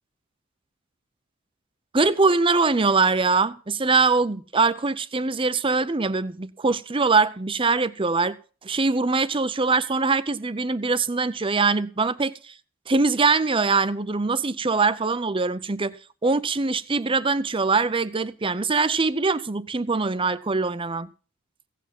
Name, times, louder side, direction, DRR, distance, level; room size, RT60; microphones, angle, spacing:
voice 1, 1.9-8.4 8.6-12.5 12.9-21.1, right 4 dB, 25° right, 0.6 m, -23 dB
16.5 x 8.4 x 6.0 m
head